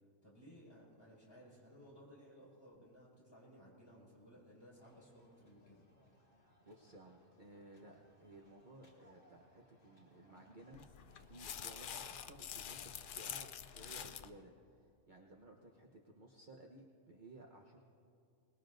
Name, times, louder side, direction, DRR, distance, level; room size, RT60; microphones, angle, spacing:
voice 1, 0.2-5.8, equal, 20° left, -6 dB, 5.4 m, -59 dB
sound 1, 4.8-14.4, left 1 dB, 40° left, 2.5 m, -67 dB
voice 2, 6.4-10.8 11.3-17.8, right 1 dB, 40° right, 0 dB, 1.1 m, -58 dB
sound 2, 10.7-14.3, left 8 dB, 65° left, 0.5 m, -47 dB
26.5 x 20.0 x 2.6 m, 2.4 s
omnidirectional pair, 1.4 m